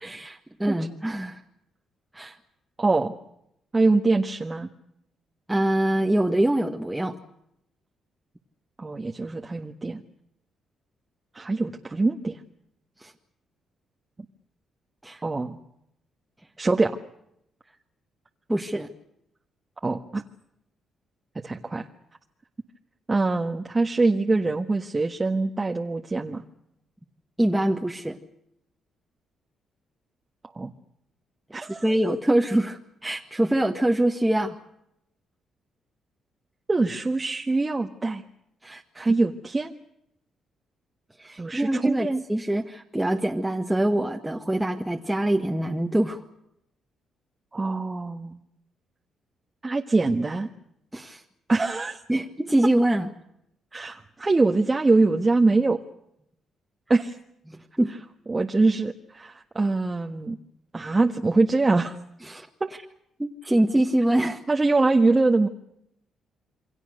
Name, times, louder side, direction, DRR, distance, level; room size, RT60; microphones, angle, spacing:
voice 1, 0.0-1.4 2.1-2.4 5.5-7.2 13.0-13.1 15.0-15.2 18.5-18.9 27.4-28.2 31.8-34.6 38.6-39.1 41.2-46.2 50.9-51.2 52.1-53.1 57.5-57.9 62.3-62.5 63.2-64.4, right 1 dB, 10° right, 1 dB, 1.8 m, -24 dB
voice 2, 2.8-3.1 3.7-4.7 8.8-10.0 11.3-12.4 15.2-15.6 16.6-17.0 19.8-20.2 21.4-21.9 23.1-26.4 30.5-30.7 31.5-31.8 36.7-38.2 38.9-39.8 41.4-42.2 47.5-48.4 49.6-50.5 51.5-52.0 53.7-55.8 56.9-57.2 58.3-60.4 60.7-61.9 62.6-62.7 64.5-65.5, right 3 dB, 25° right, 3 dB, 1.5 m, -23 dB
28.5 x 23.5 x 6.7 m, 0.79 s
cardioid pair, 90°, 0 cm